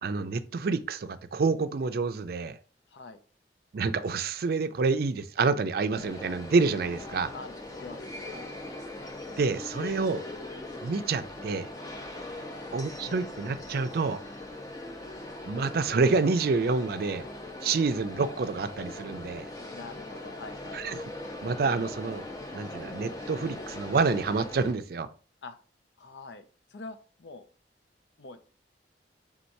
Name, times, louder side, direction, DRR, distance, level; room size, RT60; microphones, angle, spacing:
voice 1, 0.0-2.6 3.7-7.3 9.4-10.2 10.8-11.7 12.7-14.2 15.4-17.3 17.6-19.5 20.7-21.0 21.4-22.2 22.5-25.1, right 4 dB, 60° right, 0.4 m, -28 dB
voice 2, 2.9-3.2 7.3-8.7 12.3-12.6 19.7-20.8 25.4-25.6 26.0-27.5 28.2-28.5, left 3 dB, 80° left, 0.5 m, -45 dB
sound 1, 5.9-24.7, left 2 dB, 20° left, 0.6 m, -41 dB
4.4 x 3.6 x 2.7 m
head